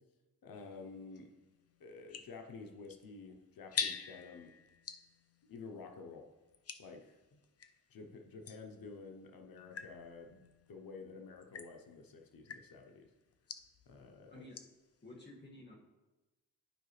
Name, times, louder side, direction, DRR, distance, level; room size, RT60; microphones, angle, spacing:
voice 1, 0.4-1.3 1.8-4.6 5.5-6.3 6.8-7.4 7.9-13.1 13.9-14.5, left 4 dB, 90° left, 3 dB, 0.8 m, -51 dB
sound 1, 0.5-7.8 8.4-14.9, left 6 dB, 45° left, 0.5 m, -47 dB
voice 2, 14.3-14.6 15.0-15.8, left 1 dB, 30° left, -3 dB, 1.9 m, -52 dB
12.0 x 4.8 x 3.2 m, 1.1 s
wide cardioid pair, 110°, 34 cm